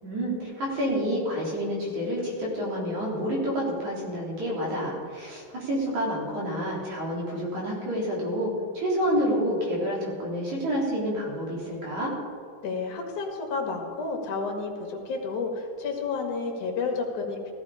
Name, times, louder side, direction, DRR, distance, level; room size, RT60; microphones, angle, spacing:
voice 1, 0.0-12.1, equal, 60° right, -4 dB, 4.9 m, -28 dB
voice 2, 12.6-17.5, left 4 dB, 65° left, 2 dB, 3.3 m, -31 dB
17.0 x 14.0 x 5.0 m, 2.3 s
omnidirectional pair, 3.8 m